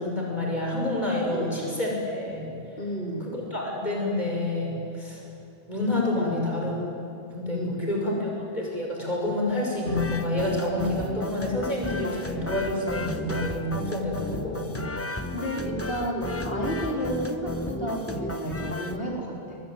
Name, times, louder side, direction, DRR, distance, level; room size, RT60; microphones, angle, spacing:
voice 1, 0.0-2.5 3.2-5.2 5.7-6.8 7.3-14.8, left 1 dB, 45° left, -2 dB, 6.3 m, -28 dB
voice 2, 1.3-1.7 2.8-3.3 6.2-6.7 7.5-8.2 15.3-19.6, equal, 75° left, -2 dB, 4.5 m, -32 dB
sound 1, 9.9-19.0, left 1 dB, 15° left, 0.9 m, -34 dB
22.5 x 21.5 x 9.3 m, 2.6 s
omnidirectional pair, 1.0 m